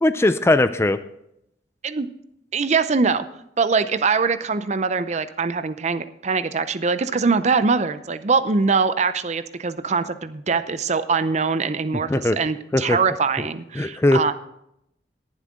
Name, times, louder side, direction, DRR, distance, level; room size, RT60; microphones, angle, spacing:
voice 1, 0.0-1.0 12.1-12.4 12.7-13.0 13.8-14.3, left 2 dB, 15° left, 11 dB, 0.4 m, -19 dB
voice 2, 2.5-3.3 3.6-14.3, right 4 dB, 40° right, 12 dB, 0.6 m, -22 dB
19.5 x 7.5 x 3.7 m, 0.78 s
head